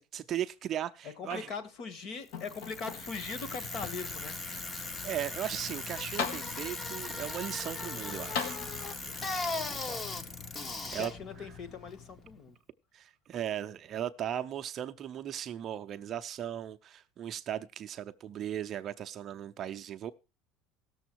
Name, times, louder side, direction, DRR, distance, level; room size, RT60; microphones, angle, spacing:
voice 1, 0.0-1.5 5.0-8.6 10.9-11.1 12.9-20.1, right 11 dB, 35° right, 0.6 m, -37 dB
voice 2, 1.0-4.4 9.0-10.1 11.0-12.6, left 5 dB, 40° left, 1.5 m, -41 dB
sound 1, 1.2-1.9 2.3-3.3 4.0-4.1 5.7-5.8 6.2-6.9 8.3-9.2 10.3-10.4, left 6 dB, 80° left, 2.3 m, -38 dB
Bicycle, 2.3-12.4, left 3 dB, 20° left, 0.8 m, -39 dB
17.5 x 7.0 x 4.6 m
cardioid pair, 160°, 0 cm